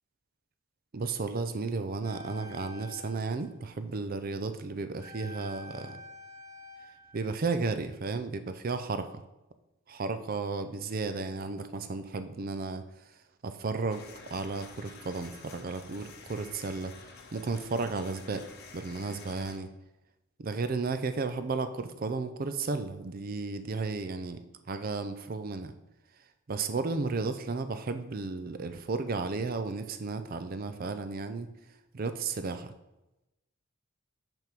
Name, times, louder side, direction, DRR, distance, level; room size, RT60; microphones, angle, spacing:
voice 1, 0.9-6.0 7.1-9.2 9.9-12.9 13.4-14.0 14.3-17.0 17.3-18.5 18.7-19.7 20.4-24.4 24.7-25.7 26.5-31.5 31.9-32.7, right 4 dB, 45° right, 10 dB, 0.5 m, -33 dB
sound 1, 2.0-4.1 5.0-8.1 8.4-8.5, left 2 dB, 25° right, 2.2 m, -48 dB
sound 2, 13.9-19.6, left 4 dB, 50° left, 0.8 m, -50 dB
5.7 x 3.6 x 5.9 m, 0.97 s
head